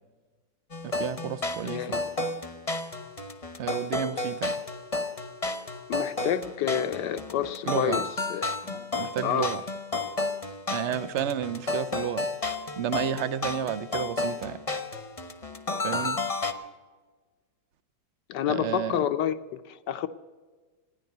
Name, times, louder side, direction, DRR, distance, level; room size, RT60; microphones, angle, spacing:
sound 1, 0.7-16.5, left 3 dB, 25° left, 0.9 m, -32 dB
voice 1, 0.8-2.0 3.6-4.6 7.6-8.0 9.0-9.6 10.7-12.3 12.8-14.6 15.8-16.2 18.5-19.1, right 9 dB, 60° right, 0.7 m, -31 dB
voice 2, 1.6-2.0 5.9-8.9 9.2-9.5 18.3-20.1, left 10 dB, 75° left, 1.4 m, -29 dB
16.5 x 10.5 x 8.0 m
omnidirectional pair, 1.9 m